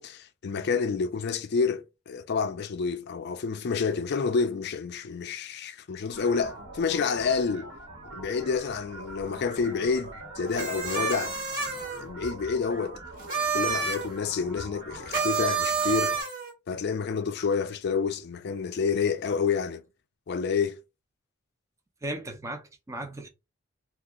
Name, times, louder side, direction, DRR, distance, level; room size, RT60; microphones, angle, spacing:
voice 1, 0.0-7.7 8.1-11.4 12.0-13.0 13.5-16.1 16.7-19.8 20.3-20.8, left 5 dB, 50° left, 0.4 m, -29 dB
sound 1, 6.1-16.2, right 1 dB, 60° right, 1.3 m, -44 dB
sound 2, 10.5-12.0 13.2-14.1 15.1-16.5, right 5 dB, 40° right, 1.3 m, -28 dB
voice 2, 22.0-23.3, right 1 dB, 15° right, 0.5 m, -36 dB
2.8 x 2.4 x 3.6 m
head